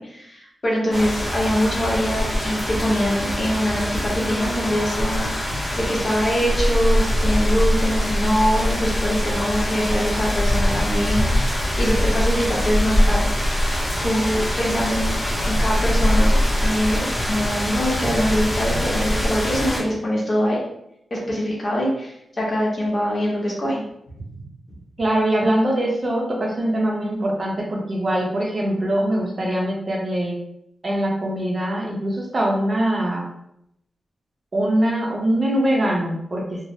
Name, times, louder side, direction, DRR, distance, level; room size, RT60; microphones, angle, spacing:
voice 1, 0.0-5.5 5.8-11.5 11.8-13.3 14.0-15.1 15.4-20.6 21.1-23.8, equal, 45° left, -4 dB, 1.0 m, -23 dB
sound 1, 0.9-19.8, equal, 25° left, 1.2 m, -22 dB
voice 2, 25.0-30.3 30.8-33.3 34.5-36.4, right 1 dB, 40° right, -1 dB, 0.6 m, -22 dB
3.2 x 2.0 x 2.6 m, 0.77 s
wide cardioid pair, 95°, 0 cm